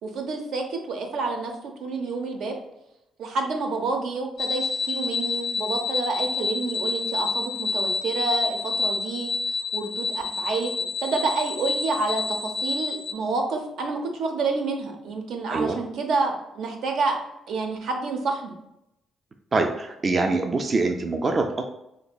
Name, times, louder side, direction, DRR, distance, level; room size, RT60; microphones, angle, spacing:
voice 1, 0.0-1.5 1.8-2.5 3.2-9.3 9.7-10.7 11.0-17.2 17.5-18.5, right 3 dB, 80° right, 3 dB, 0.6 m, -28 dB
sound 1, 4.4-13.1, left 4 dB, 55° left, 0.3 m, -28 dB
voice 2, 19.5-21.6, right 3 dB, 35° right, 5 dB, 0.3 m, -24 dB
4.0 x 2.6 x 2.3 m, 0.86 s
cardioid pair, 95°, 0 cm